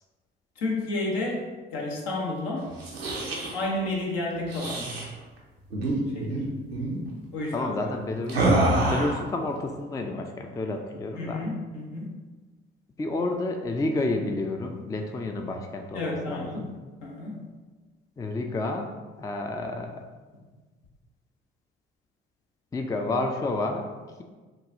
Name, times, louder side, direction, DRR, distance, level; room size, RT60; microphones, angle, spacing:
voice 1, 0.6-2.7 3.5-5.0 6.1-6.4 7.3-7.8 11.2-12.1 15.9-16.6 17.0-17.4, left 2 dB, 65° left, -2 dB, 1.0 m, -31 dB
sound 1, 2.7-3.6 4.5-5.1 5.7-5.9 6.2-6.4 6.7-7.0 8.3-9.2, right 2 dB, 90° right, 0.6 m, -26 dB
voice 2, 7.5-8.5 8.9-11.4 13.0-16.7 18.2-18.9 19.2-20.0 22.7-23.9, left 2 dB, 10° left, 3 dB, 0.4 m, -30 dB
6.2 x 2.3 x 2.7 m, 1.3 s
figure-of-eight pair, 45°, 30 cm